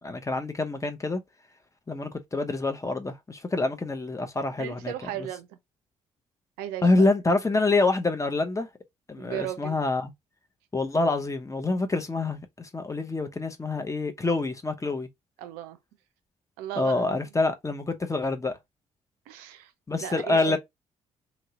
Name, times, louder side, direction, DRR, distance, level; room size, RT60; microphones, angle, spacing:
voice 1, 0.0-1.2 1.9-5.3 6.8-8.7 9.1-10.1 10.7-15.1 16.8-18.6 19.9-20.6, left 2 dB, 20° left, 0.8 m, -26 dB
voice 2, 4.6-5.6 6.6-7.1 9.2-9.8 15.4-15.8 16.6-17.3 19.3-19.7 20.0-20.6, right 11 dB, 70° right, 0.5 m, -35 dB
2.9 x 2.8 x 2.8 m
figure-of-eight pair, 40°, 16 cm